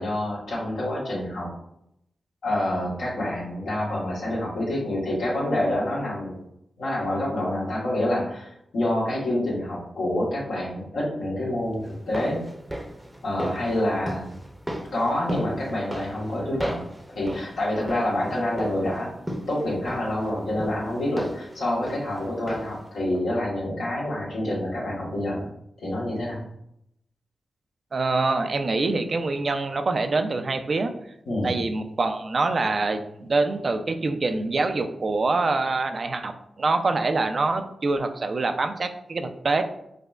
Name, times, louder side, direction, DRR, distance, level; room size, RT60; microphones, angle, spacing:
voice 1, 0.0-1.5 2.4-6.4 6.8-12.4 13.2-14.4 14.9-16.8 17.1-19.1 19.5-25.5 25.8-26.4 31.3-31.6, left 1 dB, 85° left, -6 dB, 1.2 m, -27 dB
sound 1, 11.9-22.9 23.2-23.3, equal, 15° right, 0.6 m, -36 dB
voice 2, 27.9-30.9 31.4-39.6, right 3 dB, 60° right, 7 dB, 0.4 m, -25 dB
4.8 x 2.1 x 2.3 m, 0.78 s
supercardioid pair, 40°, 0 cm